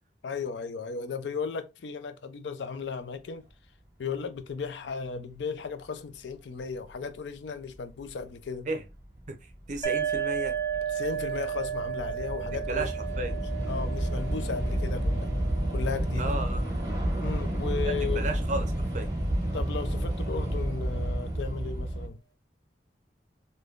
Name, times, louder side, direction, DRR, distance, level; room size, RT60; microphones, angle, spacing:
voice 1, 0.2-3.5 4.0-8.7 10.9-12.9 13.7-15.3 15.7-16.3 17.2-18.2 19.5-22.2, left 5 dB, 80° left, 0.4 m, -35 dB
Train / Subway metro underground, 8.1-8.2 9.0-9.2 9.5-22.1, right 1 dB, 20° right, 1.5 m, -30 dB
voice 2, 9.7-10.6 12.4-13.4 16.2-16.6 17.8-19.1, right 2 dB, 40° right, 0.6 m, -34 dB
sound 1, 9.8-17.3, right 8 dB, 20° left, 0.6 m, -34 dB
3.6 x 2.6 x 2.4 m
head